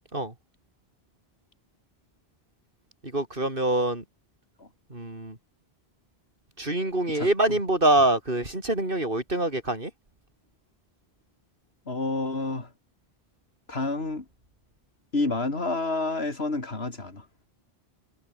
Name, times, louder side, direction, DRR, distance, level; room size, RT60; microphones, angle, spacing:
voice 1, 3.0-4.0 4.9-5.4 6.6-9.9, right 1 dB, 60° right, 5.6 m, -25 dB
voice 2, 7.1-7.6 11.9-12.7 13.7-14.3 15.1-17.3, left 3 dB, 80° left, 3.6 m, -29 dB
omnidirectional pair, 1.0 m